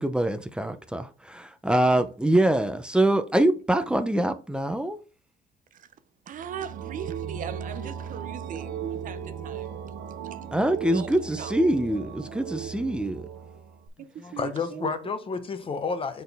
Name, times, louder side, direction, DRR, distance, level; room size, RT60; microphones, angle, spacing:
voice 1, 0.0-5.0 10.5-13.3, right 1 dB, 5° right, 0.6 m, -24 dB
voice 2, 6.3-9.8 10.3-10.4 10.9-11.5 14.0-14.9, right 8 dB, 50° right, 0.6 m, -40 dB
sound 1, 6.3-13.9, right 8 dB, 90° right, 1.0 m, -37 dB
voice 3, 14.2-16.2, left 4 dB, 30° left, 0.9 m, -30 dB
6.5 x 4.1 x 3.5 m
cardioid pair, 110°, 17 cm